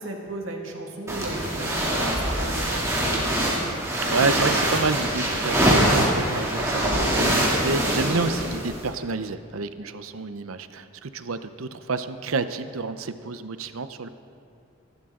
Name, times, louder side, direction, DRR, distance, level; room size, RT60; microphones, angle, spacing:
voice 1, 0.0-3.7, right 2 dB, 70° right, 1 dB, 2.0 m, -35 dB
sound 1, 1.1-8.9, right 1 dB, 15° right, 2.7 m, -24 dB
voice 2, 4.1-14.1, right 4 dB, 85° right, 11 dB, 0.7 m, -29 dB
26.0 x 12.0 x 3.8 m, 2.4 s
head